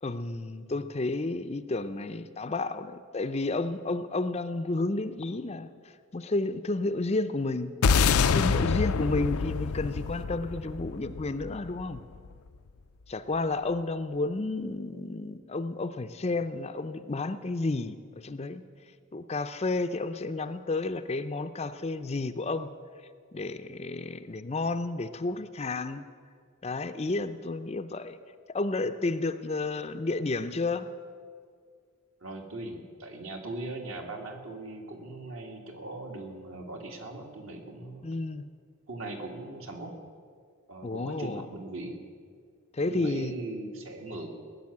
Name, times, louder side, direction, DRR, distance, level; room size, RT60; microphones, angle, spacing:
voice 1, 0.0-5.7 6.1-7.7 8.3-12.0 13.1-18.6 19.1-22.7 23.3-26.0 26.6-28.2 28.5-30.9 38.0-38.5 40.8-41.5 42.7-43.4, left 2 dB, 30° left, 10 dB, 0.5 m, -31 dB
sound 1, 7.8-12.3, left 5 dB, 85° left, 0.5 m, -26 dB
voice 2, 32.2-38.1 38.9-40.0 40.7-42.0 42.8-44.3, right 2 dB, 65° right, 2 dB, 2.0 m, -39 dB
18.0 x 6.9 x 9.7 m, 2.1 s
head